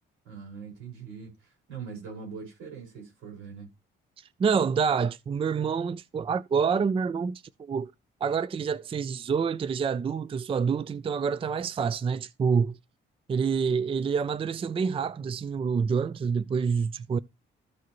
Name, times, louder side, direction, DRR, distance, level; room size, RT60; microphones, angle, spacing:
voice 1, 0.2-3.7, right 6 dB, 80° right, 4.9 m, -42 dB
voice 2, 4.2-7.9 8.2-12.8 13.3-17.2, right 6 dB, 25° right, 0.4 m, -27 dB
14.0 x 4.7 x 3.0 m
cardioid pair, 90°, 20 cm